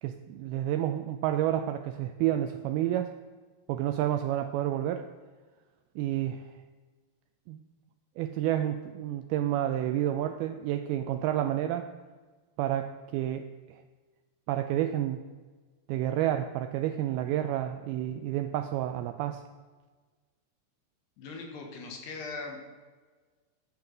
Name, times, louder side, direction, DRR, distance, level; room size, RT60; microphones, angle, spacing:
voice 1, 0.0-3.1 3.7-5.1 6.0-6.4 7.5-7.6 8.2-11.9 12.6-13.8 14.5-15.2 15.9-19.4, right 12 dB, 90° right, 8 dB, 2.1 m, -30 dB
voice 2, 21.2-22.6, left 3 dB, 75° left, 2 dB, 3.4 m, -40 dB
12.0 x 7.1 x 6.4 m, 1.4 s
omnidirectional pair, 4.9 m